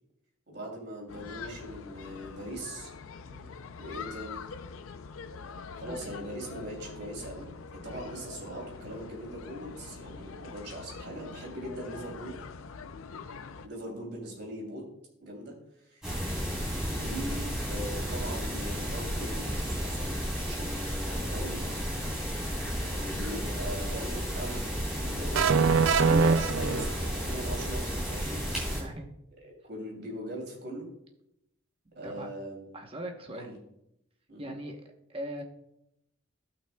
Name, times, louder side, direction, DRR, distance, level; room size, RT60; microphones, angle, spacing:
voice 1, 0.5-2.9 3.8-4.5 5.8-7.5 7.8-12.4 13.6-14.8 15.2-16.4 16.9-21.8 22.8-28.8 29.7-30.9 31.9-32.8 33.3-33.6 34.3-34.5, right 1 dB, 50° right, -1 dB, 2.9 m, -40 dB
sound 1, 1.1-13.7, left 5 dB, 80° left, 0.5 m, -44 dB
sound 2, 16.0-28.8, equal, 5° right, 2.9 m, -33 dB
sound 3, 25.3-27.3, right 5 dB, 70° right, 0.4 m, -23 dB
voice 2, 32.7-33.5 34.4-34.8 35.1-35.4, right 1 dB, 25° right, 3 dB, 0.9 m, -41 dB
16.5 x 5.9 x 2.3 m, 0.81 s
head